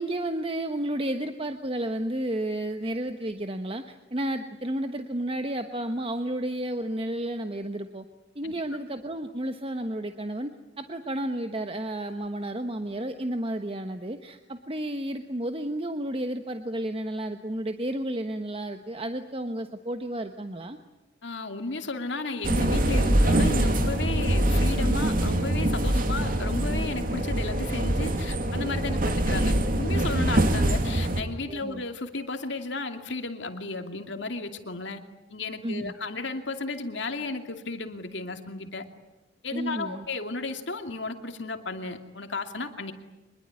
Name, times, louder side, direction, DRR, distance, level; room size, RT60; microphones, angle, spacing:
voice 1, 0.0-8.0 8.3-10.5 10.8-20.8 25.9-26.3 28.8-29.2 31.5-31.8 35.6-35.9 39.5-40.0, right 1 dB, 30° right, 7 dB, 1.2 m, -32 dB
voice 2, 21.2-35.0 35.3-38.8 39.4-42.9, left 3 dB, 65° left, 6 dB, 2.6 m, -34 dB
sound 1, 22.4-31.2, right 1 dB, 50° right, 2.5 m, -24 dB
25.0 x 22.0 x 9.7 m, 1.0 s
head